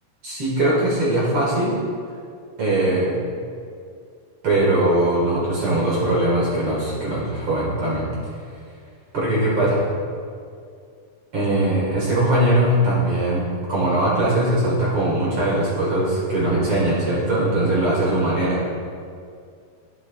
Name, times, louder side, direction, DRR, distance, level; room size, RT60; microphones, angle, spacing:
voice 1, 0.2-1.8 2.6-3.2 4.4-8.1 9.1-9.9 11.3-18.6, right 1 dB, 60° right, -7 dB, 1.4 m, -20 dB
11.0 x 9.2 x 2.3 m, 2.3 s
omnidirectional pair, 4.9 m